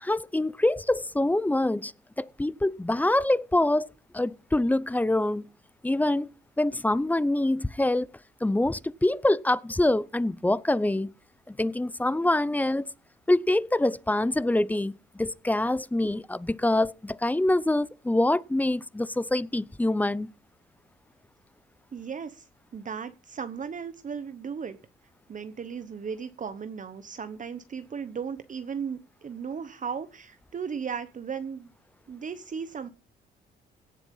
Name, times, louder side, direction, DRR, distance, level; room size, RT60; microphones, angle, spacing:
voice 1, 0.0-1.9 2.2-3.9 4.1-5.5 5.8-6.3 6.6-8.1 8.4-11.1 11.5-12.9 13.3-20.3, left 1 dB, 10° left, 0.6 m, -25 dB
voice 2, 21.9-22.5 22.7-24.8 25.3-31.7 32.1-32.9, right 6 dB, 40° right, 1.1 m, -36 dB
17.0 x 7.0 x 5.5 m
cardioid pair, 90°, 20 cm